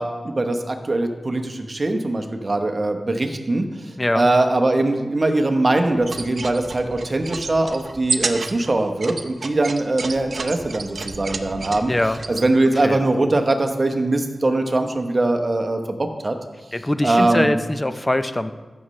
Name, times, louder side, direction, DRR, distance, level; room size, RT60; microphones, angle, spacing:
voice 1, 0.0-11.9 12.3-16.0 16.2-16.4 17.0-17.6, right 2 dB, 45° right, 5 dB, 1.0 m, -21 dB
voice 2, 4.0-4.3 11.9-12.2 12.8-13.0 16.7-18.5, left 1 dB, 25° left, 10 dB, 0.6 m, -22 dB
sound 1, 6.0-12.5, right 3 dB, 65° right, 0.6 m, -31 dB
14.0 x 6.4 x 3.2 m, 1.3 s
cardioid pair, 55°, 0 cm